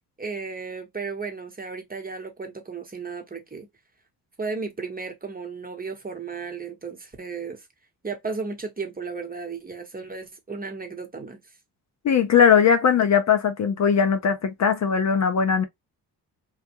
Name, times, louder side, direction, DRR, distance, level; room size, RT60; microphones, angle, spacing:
voice 1, 0.2-3.7 4.4-7.7 8.0-11.4, right 4 dB, 20° right, 0.9 m, -34 dB
voice 2, 12.0-15.6, left 7 dB, 40° left, 0.5 m, -19 dB
2.2 x 2.1 x 2.8 m
supercardioid pair, 60°, 42 cm